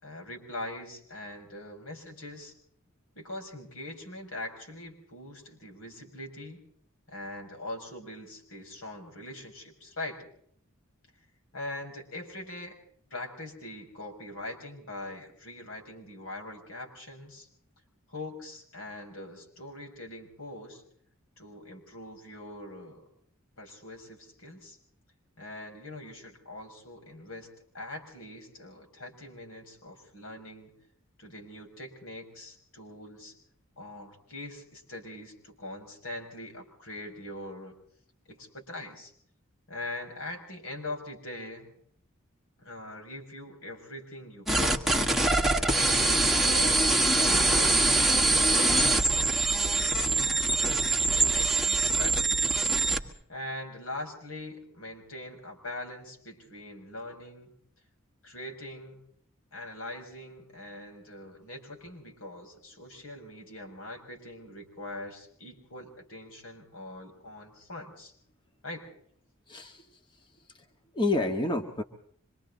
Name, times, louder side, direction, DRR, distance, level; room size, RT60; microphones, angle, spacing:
voice 1, 0.0-2.5 3.1-6.6 7.1-10.3 11.5-12.8 13.1-17.5 18.1-20.8 21.4-23.0 23.6-24.8 25.4-27.5 27.7-30.7 31.2-33.4 33.8-37.7 38.3-39.1 39.7-41.7 42.6-46.8 47.4-52.5 52.8-57.5 58.2-59.0 59.5-68.1 68.6-68.9, left 1 dB, 80° left, 2 dB, 6.3 m, -42 dB
sound 1, 44.5-53.0, right 2 dB, ahead, 1.7 m, -24 dB
voice 2, 69.5-70.0 70.5-70.6 70.9-71.8, left 2 dB, 25° left, 3 dB, 1.7 m, -29 dB
26.0 x 24.5 x 4.0 m, 0.62 s
head